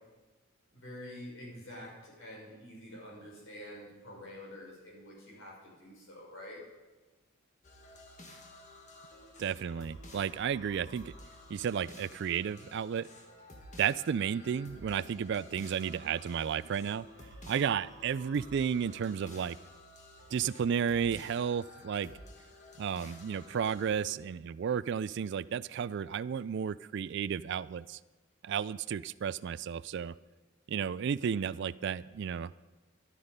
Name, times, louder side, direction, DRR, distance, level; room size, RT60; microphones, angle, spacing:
voice 1, 0.7-6.6, left 1 dB, 65° left, -3 dB, 5.9 m, -47 dB
sound 1, 7.6-23.9, left 1 dB, 35° left, 1.7 m, -52 dB
voice 2, 9.4-11.1 11.5-13.1 13.8-17.1 17.5-19.6 20.3-22.1 22.8-28.0 28.4-30.1 30.7-32.5, right 7 dB, 55° right, 18 dB, 0.3 m, -33 dB
13.5 x 11.5 x 5.2 m, 1.2 s
head